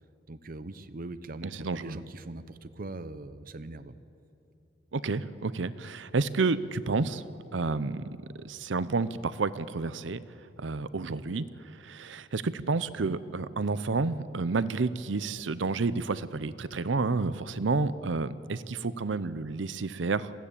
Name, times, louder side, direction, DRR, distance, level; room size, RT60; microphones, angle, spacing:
voice 1, 0.3-4.0, right 2 dB, 50° right, 13 dB, 0.8 m, -41 dB
voice 2, 1.4-2.0 4.9-7.2 7.5-8.0 8.4-10.2 10.6-11.4 11.8-20.3, right 3 dB, 90° right, 16 dB, 0.7 m, -30 dB
20.0 x 15.5 x 8.5 m, 2.7 s
head